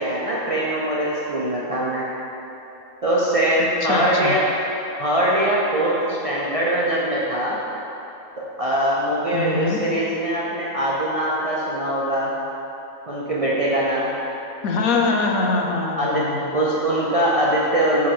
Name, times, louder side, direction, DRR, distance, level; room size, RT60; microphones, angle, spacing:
voice 1, 0.0-2.0 3.0-4.4 5.0-7.6 8.4-12.3 13.1-14.1 16.0-16.3 16.5-18.1, right 1 dB, 40° right, -6 dB, 0.5 m, -22 dB
voice 2, 3.8-4.3 9.3-9.8 14.6-16.6, left 3 dB, 85° left, 2 dB, 1.2 m, -23 dB
7.1 x 3.2 x 6.0 m, 3.0 s
omnidirectional pair, 1.5 m